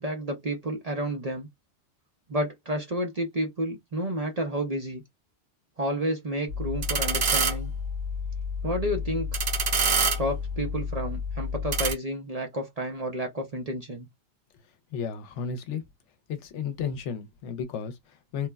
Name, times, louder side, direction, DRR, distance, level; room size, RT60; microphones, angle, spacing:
voice 1, 0.0-1.5 2.3-5.0 5.8-7.7 8.6-9.4 10.2-14.1, equal, 45° right, 0.5 m, -30 dB
sound 1, 6.5-11.9, right 2 dB, 90° right, 1.3 m, -28 dB
voice 2, 14.9-15.8 16.3-18.5, left 6 dB, 75° left, 0.9 m, -33 dB
3.0 x 2.1 x 2.3 m
omnidirectional pair, 1.2 m